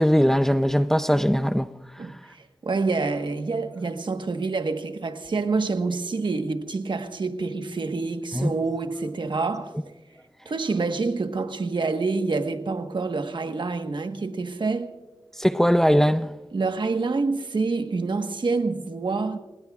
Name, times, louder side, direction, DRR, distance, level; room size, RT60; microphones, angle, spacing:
voice 1, 0.0-1.7 8.3-8.5 15.4-16.3, equal, 5° left, 0.5 m, -20 dB
voice 2, 2.0-9.7 10.4-14.9 16.5-19.4, right 3 dB, 65° right, 1.3 m, -27 dB
27.5 x 20.0 x 2.4 m
wide cardioid pair, 75°, 9 cm